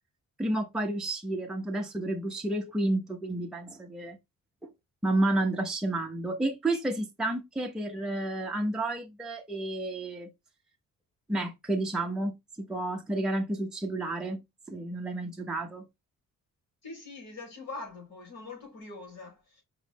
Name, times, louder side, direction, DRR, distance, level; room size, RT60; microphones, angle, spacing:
voice 1, 0.4-4.2 4.6-4.7 5.0-10.3 11.3-14.4 14.7-15.8, right 1 dB, ahead, 0.6 m, -31 dB
voice 2, 16.8-19.6, left 3 dB, 55° left, 3.2 m, -43 dB
4.9 x 3.1 x 3.4 m
wide cardioid pair, 170°, 32 cm